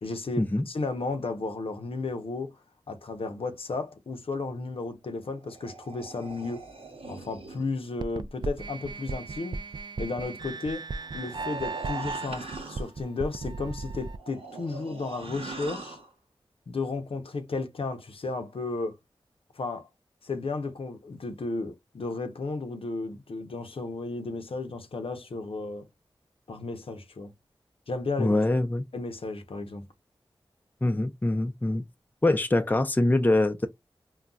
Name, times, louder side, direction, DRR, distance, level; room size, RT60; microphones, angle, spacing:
voice 1, 0.0-2.6 2.9-6.6 7.1-9.6 10.0-10.8 11.1-16.0 16.7-19.0 19.5-19.9 20.2-25.9 26.5-27.3 27.9-28.4 28.9-29.9, left 3 dB, 75° left, 0.7 m, -33 dB
sound 1, 5.2-7.7 10.8-13.0 14.0-16.1, right 3 dB, 80° right, 0.9 m, -42 dB
sound 2, 8.0-14.2, right 3 dB, 50° right, 0.4 m, -36 dB
voice 2, 28.2-28.8 30.8-31.8 32.2-33.7, left 2 dB, 20° left, 0.5 m, -24 dB
3.9 x 2.3 x 2.3 m
wide cardioid pair, 55°, 10 cm